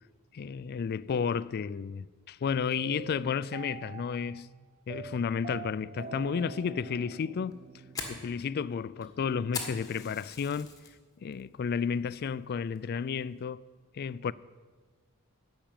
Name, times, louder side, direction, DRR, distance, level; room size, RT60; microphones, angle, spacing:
voice 1, 0.3-4.5 4.9-7.6 8.1-10.7 11.2-13.6 13.9-14.3, left 6 dB, 45° left, 0.3 m, -32 dB
sound 1, 2.7-8.9, right 6 dB, 30° right, 0.5 m, -45 dB
Fire, 7.4-10.9 11.3-11.7 12.1-12.2 12.8-13.1, left 4 dB, 15° left, 1.7 m, -40 dB
14.0 x 5.9 x 8.9 m
head